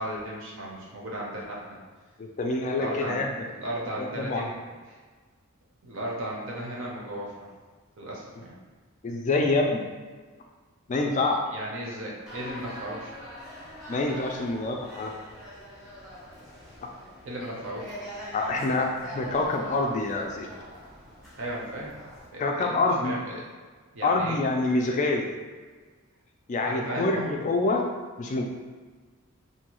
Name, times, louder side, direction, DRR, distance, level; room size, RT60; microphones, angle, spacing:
voice 1, 0.0-1.6 2.7-3.3 3.6-4.5 4.9-5.0 5.8-7.3 8.0-8.6 11.5-13.1 17.2-17.9 21.4-22.0 22.3-22.7 23.0-23.4 23.9-24.4 26.6-27.3, right 1 dB, 60° right, -3 dB, 0.7 m, -35 dB
voice 2, 2.2-3.3 4.0-4.5 9.0-9.9 10.9-11.4 13.9-15.1 18.3-20.5 22.4-23.1 24.0-25.3 26.5-27.8 28.2-28.4, left 2 dB, 35° left, 2 dB, 0.3 m, -26 dB
sound 1, 12.3-22.3, equal, ahead, 0.6 m, -43 dB
2.7 x 2.3 x 2.9 m, 1.5 s
head